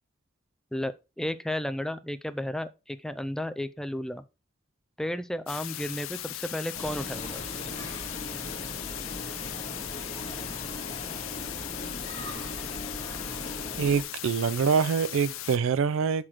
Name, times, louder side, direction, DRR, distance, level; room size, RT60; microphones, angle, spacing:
voice 1, 0.7-4.2 5.0-7.4, left 1 dB, 5° left, 0.3 m, -33 dB
sound 1, 5.5-15.6, left 15 dB, 90° left, 0.4 m, -38 dB
sound 2, 6.7-14.0, left 1 dB, 35° left, 1.8 m, -38 dB
voice 2, 13.8-16.3, right 6 dB, 80° right, 0.4 m, -25 dB
6.3 x 5.8 x 3.0 m
head